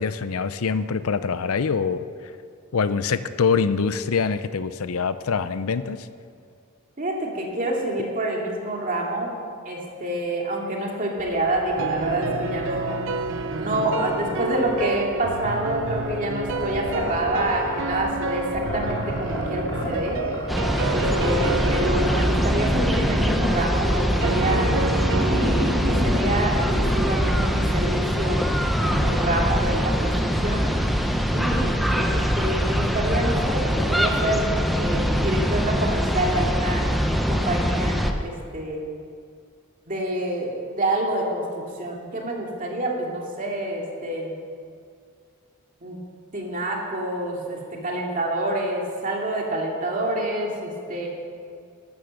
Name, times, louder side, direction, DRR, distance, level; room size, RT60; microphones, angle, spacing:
voice 1, 0.0-2.1 2.7-6.1, left 5 dB, 80° left, 13 dB, 0.6 m, -24 dB
voice 2, 7.0-9.4 9.6-13.0 13.6-20.2 20.9-24.8 25.2-28.4 28.8-30.7 31.3-36.9 37.3-38.9 39.9-44.4 45.8-46.0 46.3-51.1, right 1 dB, 40° right, -1 dB, 2.5 m, -27 dB
sound 1, 11.2-27.0, equal, 20° left, 3.1 m, -30 dB
sound 2, 11.8-29.6, right 3 dB, 60° right, 0.8 m, -31 dB
sound 3, 20.5-38.1, equal, ahead, 0.8 m, -23 dB
13.0 x 13.0 x 6.6 m, 2.2 s
head